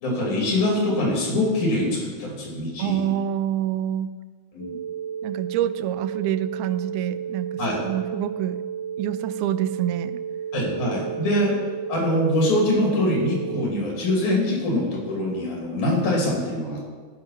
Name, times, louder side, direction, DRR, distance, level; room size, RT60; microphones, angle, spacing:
voice 1, 0.0-3.1 4.5-4.8 7.6-7.8 10.5-11.6 11.9-16.9, left 1 dB, 80° left, -2 dB, 4.2 m, -24 dB
voice 2, 2.8-4.1 5.2-8.6 9.0-10.2, right 11 dB, 85° right, 13 dB, 2.0 m, -27 dB
sound 1, 4.6-13.6, right 8 dB, 25° left, 4.1 m, -32 dB
14.5 x 5.8 x 5.6 m, 1.5 s
omnidirectional pair, 3.4 m